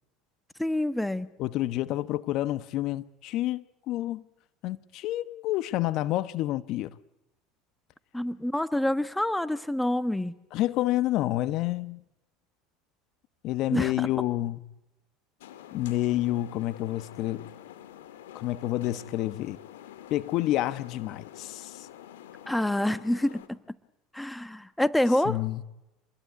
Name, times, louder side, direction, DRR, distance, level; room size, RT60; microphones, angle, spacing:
voice 1, 0.6-1.3 8.1-10.3 13.7-14.1 22.5-23.6 24.1-25.4, left 1 dB, 5° left, 1.3 m, -27 dB
voice 2, 1.4-4.2 4.6-6.9 10.5-12.0 13.4-14.6 15.7-17.5 18.3-19.6 20.1-21.9 25.2-25.6, left 15 dB, 55° left, 1.2 m, -29 dB
sound 1, 15.4-23.5, left 11 dB, 85° left, 2.6 m, -47 dB
27.5 x 21.5 x 9.6 m
supercardioid pair, 100°, 0 cm